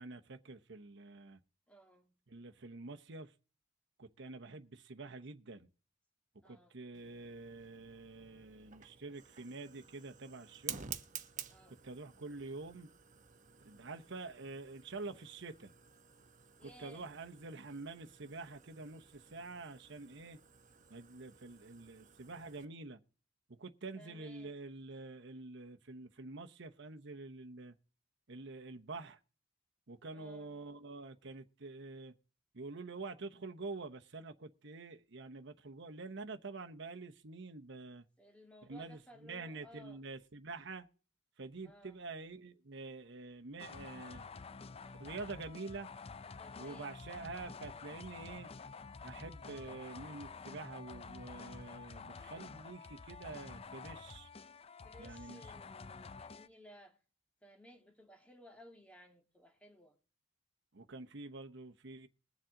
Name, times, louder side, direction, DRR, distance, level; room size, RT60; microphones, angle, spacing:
voice 1, 0.0-1.4 2.3-3.3 4.0-5.7 6.4-10.9 11.7-12.9 13.6-15.7 16.6-20.4 20.9-23.0 23.5-27.7 28.3-29.2 29.9-32.1 32.5-38.0 38.6-40.9 41.4-44.3 45.0-45.9 46.6-48.5 49.0-54.3 55.0-55.4 60.7-62.1, right 3 dB, 65° right, 0.9 m, -47 dB
voice 2, 1.7-2.2 6.4-6.8 11.5-11.8 16.6-17.1 23.9-24.5 30.1-30.6 38.2-40.0 41.6-42.0 46.4-46.9 49.4-49.9 54.8-57.0 57.4-60.0, equal, 5° left, 1.9 m, -58 dB
Fire, 6.9-22.7, right 8 dB, 40° right, 1.0 m, -52 dB
sound 1, 43.6-56.5, left 4 dB, 30° left, 0.5 m, -49 dB
21.5 x 7.4 x 3.8 m
head